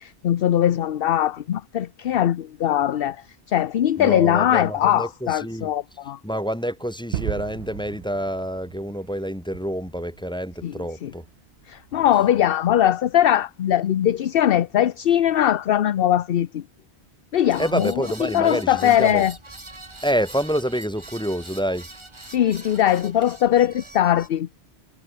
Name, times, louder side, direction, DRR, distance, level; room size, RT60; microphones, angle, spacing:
voice 1, 0.0-6.2 10.6-10.7 11.0-11.1 11.7-16.6 17.3-17.9 18.2-19.3 22.3-24.5, left 11 dB, 60° left, 0.8 m, -21 dB
voice 2, 4.0-5.7 6.2-11.2 17.6-19.2 20.0-21.9, equal, 5° left, 1.7 m, -27 dB
Gunshot gunfire / Fireworks / Boom, 7.1-11.9, right 11 dB, 65° right, 0.8 m, -36 dB
sound 1, 17.5-24.3, right 2 dB, 25° right, 2.0 m, -43 dB
omnidirectional pair, 1.1 m